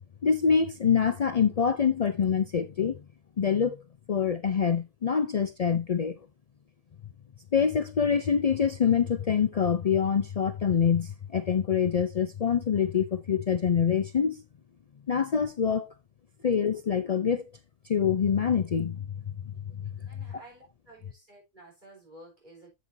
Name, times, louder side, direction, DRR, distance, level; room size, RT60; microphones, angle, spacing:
voice 1, 0.2-3.0 3.4-3.8 4.1-6.2 7.5-14.4 15.1-15.9 16.4-17.5 17.8-19.9, left 7 dB, 75° left, 0.3 m, -25 dB
voice 2, 20.1-22.7, right 1 dB, 35° right, 4.7 m, -52 dB
8.4 x 7.4 x 2.6 m
omnidirectional pair, 1.4 m